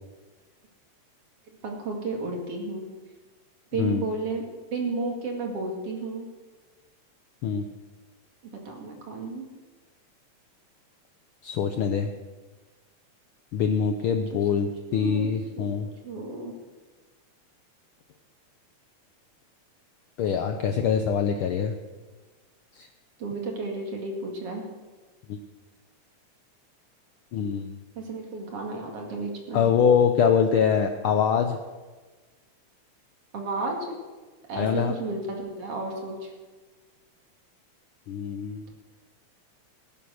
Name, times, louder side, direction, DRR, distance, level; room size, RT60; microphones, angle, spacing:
voice 1, 1.6-2.9 3.7-4.5 4.7-6.3 8.5-9.5 14.3-14.4 14.9-15.7 16.0-16.5 23.2-24.7 28.0-29.6 33.3-34.0 34.5-36.3, right 3 dB, 55° right, 1 dB, 3.0 m, -32 dB
voice 2, 11.4-12.1 13.5-15.9 20.2-21.7 22.8-22.9 25.3-25.4 27.3-27.7 29.5-31.6 34.6-34.9 38.1-38.7, left 7 dB, 90° left, 6 dB, 1.1 m, -24 dB
17.0 x 9.2 x 6.4 m, 1.3 s
omnidirectional pair, 3.4 m